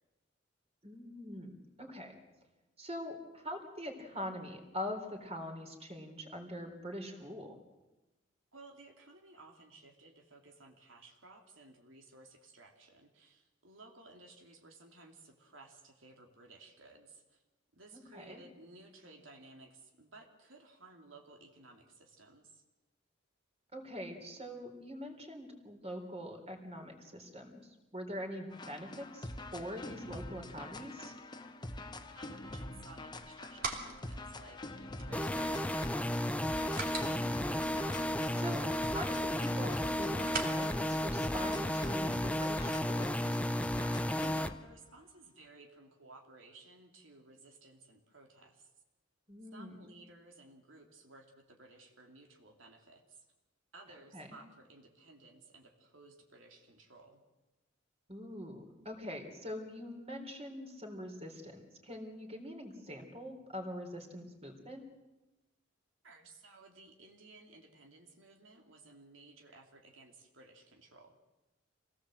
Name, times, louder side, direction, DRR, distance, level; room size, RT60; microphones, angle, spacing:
voice 1, 0.8-2.2 2.8-7.6 17.9-18.4 23.7-31.1 37.2-37.8 38.4-43.2 49.3-49.7 54.1-54.3 58.1-64.8, equal, 35° right, 4 dB, 3.9 m, -44 dB
voice 2, 8.5-17.4 17.7-22.6 32.1-36.3 44.2-48.7 49.5-53.2 53.7-57.2 66.0-71.2, right 2 dB, 90° right, 2 dB, 2.8 m, -57 dB
sound 1, 28.5-44.6, left 2 dB, 25° left, 1.2 m, -45 dB
sound 2, 33.0-41.9, right 4 dB, 50° right, 3.0 m, -46 dB
sound 3, 35.1-44.5, left 1 dB, 5° left, 0.7 m, -33 dB
26.5 x 18.0 x 7.8 m, 1.1 s
head